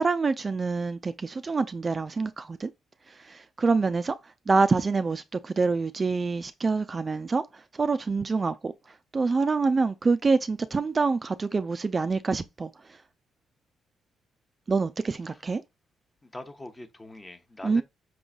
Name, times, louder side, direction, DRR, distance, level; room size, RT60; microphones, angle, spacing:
voice 1, 0.0-2.7 3.1-4.2 4.5-8.7 9.1-13.0 14.7-15.6 17.6-17.8, right 4 dB, 30° right, 0.3 m, -26 dB
voice 2, 16.2-17.8, left 1 dB, 20° left, 0.8 m, -43 dB
5.9 x 3.8 x 2.3 m
cardioid pair, 90°, 0 cm